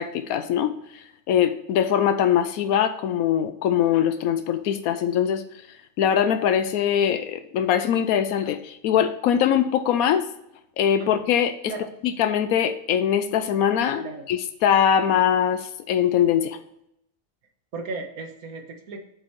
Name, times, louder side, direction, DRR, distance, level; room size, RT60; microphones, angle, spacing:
voice 1, 0.0-5.4 6.0-10.3 10.8-11.5 12.0-16.6, left 9 dB, 85° left, 10 dB, 1.1 m, -22 dB
voice 2, 17.7-19.0, right 3 dB, 90° right, 5 dB, 1.6 m, -35 dB
7.8 x 5.4 x 4.5 m, 0.78 s
omnidirectional pair, 1.5 m